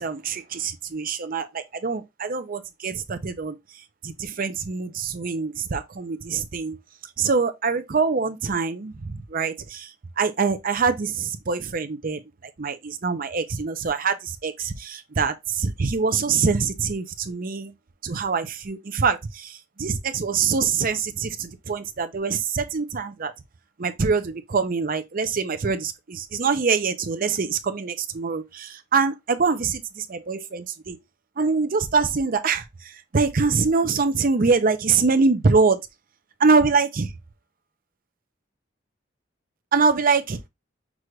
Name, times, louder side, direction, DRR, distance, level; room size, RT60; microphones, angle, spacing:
voice 1, 0.0-3.6 4.0-6.8 7.2-12.2 12.6-17.7 18.0-23.3 23.8-31.0 31.4-35.8 36.4-37.1 39.7-40.4, right 4 dB, 45° right, 0.6 m, -24 dB
6.1 x 2.5 x 3.2 m
head